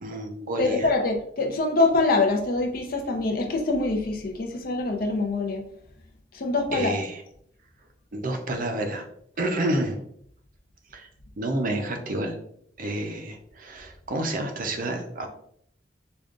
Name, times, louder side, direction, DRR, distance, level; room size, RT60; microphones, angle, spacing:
voice 1, 0.0-0.9 6.7-7.2 8.1-9.1 9.4-10.0 10.9-11.1 11.4-12.4 12.8-15.3, right 1 dB, 45° right, 4 dB, 0.5 m, -29 dB
voice 2, 0.6-5.6 6.3-6.9, left 3 dB, 50° left, 3 dB, 0.6 m, -24 dB
5.0 x 2.3 x 2.4 m, 0.69 s
head